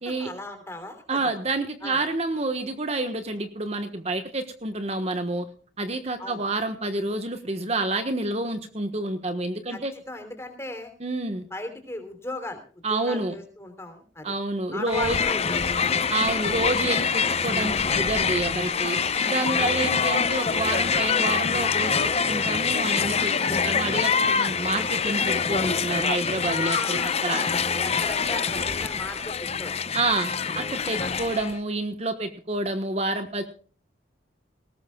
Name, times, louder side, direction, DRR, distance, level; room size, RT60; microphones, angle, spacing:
voice 1, 0.1-1.3 1.8-2.0 6.2-6.4 9.7-10.9 11.5-12.6 12.9-14.3 14.7-15.9 19.6-19.8 26.6-29.8 30.5-30.6 31.0-31.2, left 2 dB, 15° left, 7 dB, 3.2 m, -37 dB
voice 2, 1.1-5.5 5.8-9.9 11.0-11.4 12.8-13.3 14.2-15.2 16.1-19.0 19.2-27.4 29.9-33.4, right 2 dB, 35° right, 7 dB, 1.3 m, -28 dB
Crowd, 14.9-31.6, left 6 dB, 35° left, 0.7 m, -25 dB
19.5 x 19.0 x 2.3 m, 0.41 s
head